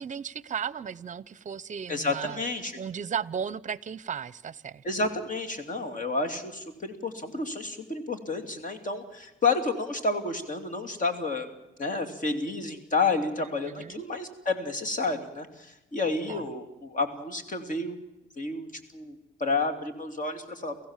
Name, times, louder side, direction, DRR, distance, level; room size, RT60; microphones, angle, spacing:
voice 1, 0.0-2.4 2.8-4.8 13.7-14.0 16.3-16.4, right 7 dB, 40° right, 21 dB, 0.8 m, -35 dB
voice 2, 1.9-2.8 4.8-11.5 11.8-17.9 18.4-18.7 18.9-20.9, left 3 dB, 40° left, 6 dB, 2.9 m, -30 dB
29.0 x 15.5 x 7.4 m, 0.99 s
cardioid pair, 90°, 20 cm